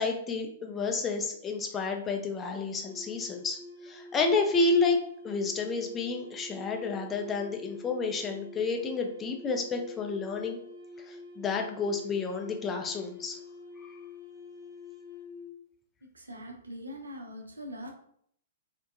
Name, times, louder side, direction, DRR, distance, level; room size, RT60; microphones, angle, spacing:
voice 1, 0.0-10.6 11.0-13.4 13.8-14.0, left 4 dB, 15° left, 2 dB, 0.3 m, -30 dB
sound 1, 2.8-15.5, left 5 dB, 70° left, 0.9 m, -47 dB
voice 2, 16.0-17.9, equal, 75° right, 2 dB, 0.5 m, -42 dB
2.5 x 2.1 x 2.4 m, 0.67 s
figure-of-eight pair, 105°, 0 cm